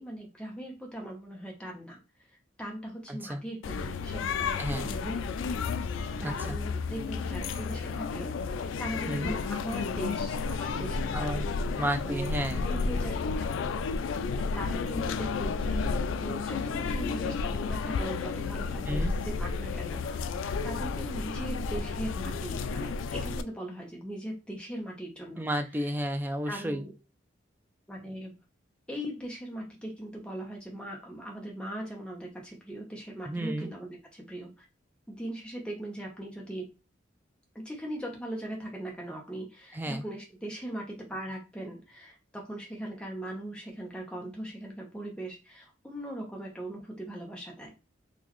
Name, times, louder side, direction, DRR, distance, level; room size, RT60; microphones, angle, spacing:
voice 1, 0.0-2.0 2.6-5.8 6.2-8.3 8.8-11.5 12.0-13.1 14.4-15.9 16.2-20.2 20.6-25.4 26.5-26.9 27.9-28.3 28.9-34.6 35.1-36.7 37.5-47.7, right 1 dB, 5° left, -1 dB, 0.8 m, -40 dB
voice 2, 3.1-3.4 4.6-4.9 6.2-6.6 9.1-9.3 11.1-11.5 11.8-12.6 18.9-19.1 25.4-26.8 33.3-33.7 39.7-40.0, right 1 dB, 10° right, 7 dB, 0.3 m, -32 dB
sound 1, 3.6-23.4, left 4 dB, 85° left, 0.3 m, -32 dB
3.9 x 2.5 x 3.0 m, 0.29 s
head